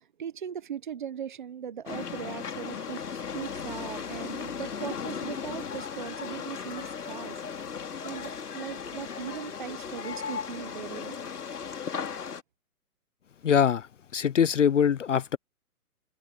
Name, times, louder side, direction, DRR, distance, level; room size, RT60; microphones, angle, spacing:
voice 1, 0.0-7.4 8.0-11.2, right 8 dB, 30° right, 1.3 m, -39 dB
sound 1, 1.9-12.4, left 6 dB, 80° left, 4.0 m, -36 dB
voice 2, 13.4-15.4, left 8 dB, 55° left, 0.8 m, -23 dB
hypercardioid pair, 175°, 46 cm